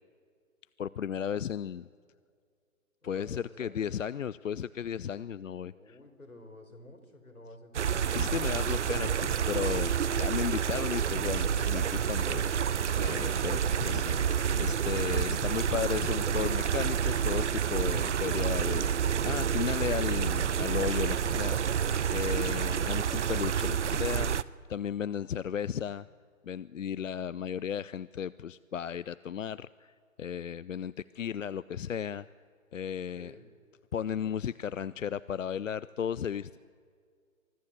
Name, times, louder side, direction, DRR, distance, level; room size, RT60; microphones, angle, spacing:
voice 1, 0.8-1.9 3.0-6.0 8.1-14.2 14.6-26.1 26.4-32.3 32.7-33.3 33.9-36.6, left 8 dB, 65° left, 18 dB, 0.5 m, -35 dB
voice 2, 3.0-3.9 5.7-8.1 13.3-13.8 33.1-33.5, left 1 dB, 90° left, 3 dB, 4.0 m, -50 dB
sound 1, 7.7-24.4, right 8 dB, 55° right, 0.6 m, -29 dB
sound 2, 12.8-14.8, right 5 dB, 35° right, 2.3 m, -46 dB
24.5 x 15.5 x 7.6 m, 2.1 s
figure-of-eight pair, 130°, 42 cm